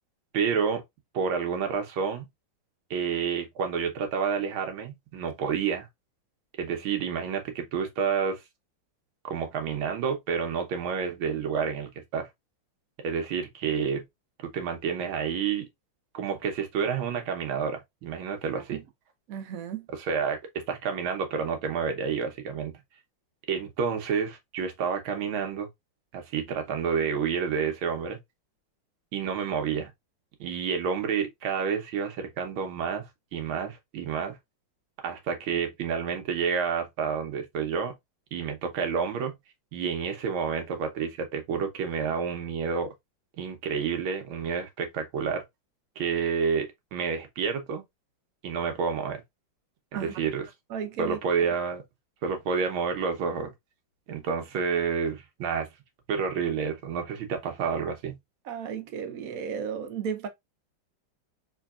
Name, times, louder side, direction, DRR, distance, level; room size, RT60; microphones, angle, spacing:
voice 1, 0.3-0.8 1.1-2.3 2.9-5.9 6.6-8.4 9.2-12.3 13.0-14.0 14.4-15.7 16.1-18.8 19.9-22.8 23.5-25.7 26.1-28.2 29.1-29.9 30.4-34.4 35.0-37.9 38.3-39.3 39.7-42.9 43.4-45.4 46.0-47.8 48.4-49.2 49.9-50.4 51.0-51.8 52.2-53.5 54.1-55.7 56.1-58.2, right 6 dB, 85° right, 1.7 m, -29 dB
voice 2, 19.3-19.9 49.9-50.1 50.7-51.2 58.4-60.3, right 7 dB, 60° right, 0.9 m, -34 dB
3.8 x 3.3 x 2.3 m
omnidirectional pair, 2.2 m